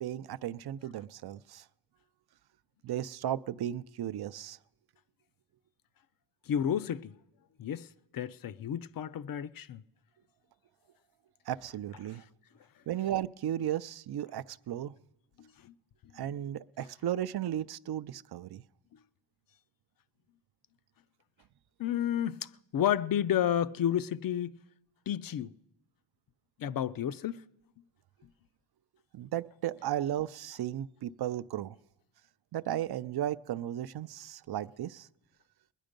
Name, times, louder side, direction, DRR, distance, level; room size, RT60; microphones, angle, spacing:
voice 1, 0.0-1.6 2.8-4.6 11.5-12.2 12.9-14.9 16.1-18.6 29.1-31.8 32.5-35.1, right 11 dB, 60° right, 0.5 m, -35 dB
voice 2, 6.5-7.1 7.6-7.9 8.1-9.8 15.4-15.7 21.8-24.6 25.1-25.5 26.6-27.4, left 10 dB, 50° left, 0.5 m, -31 dB
21.0 x 10.0 x 5.2 m
wide cardioid pair, 105°, 45 cm